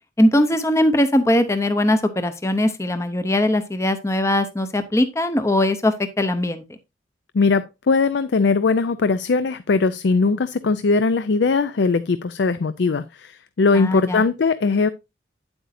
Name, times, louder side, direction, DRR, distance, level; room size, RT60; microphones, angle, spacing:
voice 1, 0.2-6.6 13.7-14.2, left 1 dB, 15° left, 0.6 m, -20 dB
voice 2, 7.3-14.9, left 4 dB, 70° left, 0.5 m, -20 dB
9.4 x 7.9 x 2.6 m
head